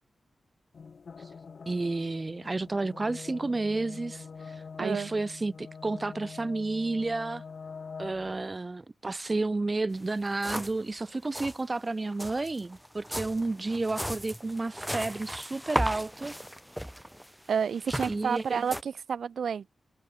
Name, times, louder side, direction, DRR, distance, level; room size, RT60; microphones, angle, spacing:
sound 1, 0.7-8.5, left 5 dB, 60° left, 1.7 m, -45 dB
voice 1, 1.7-7.4 8.0-16.3 18.1-18.6, right 3 dB, 30° right, 0.5 m, -31 dB
voice 2, 4.8-5.1 17.5-19.7, right 7 dB, 80° right, 1.7 m, -30 dB
sound 2, 9.9-10.0 10.3-10.9 11.1-11.6 12.1-18.8, equal, ahead, 3.2 m, -35 dB
wide cardioid pair, 115°, 0 cm